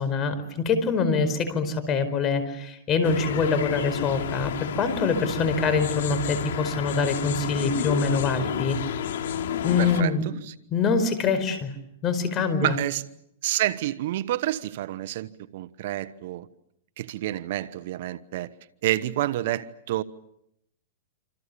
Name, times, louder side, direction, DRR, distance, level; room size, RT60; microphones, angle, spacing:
voice 1, 0.0-8.8 9.6-10.2 10.7-11.7 12.0-12.7, left 4 dB, 25° left, 4.8 m, -25 dB
sound 1, 3.0-10.0, left 8 dB, 75° left, 3.1 m, -31 dB
voice 2, 9.8-10.1 10.5-10.6 12.6-13.0 13.4-16.5 17.0-18.5 18.8-20.0, right 14 dB, 60° right, 1.1 m, -28 dB
27.5 x 27.5 x 6.9 m
hypercardioid pair, 145°, 0 cm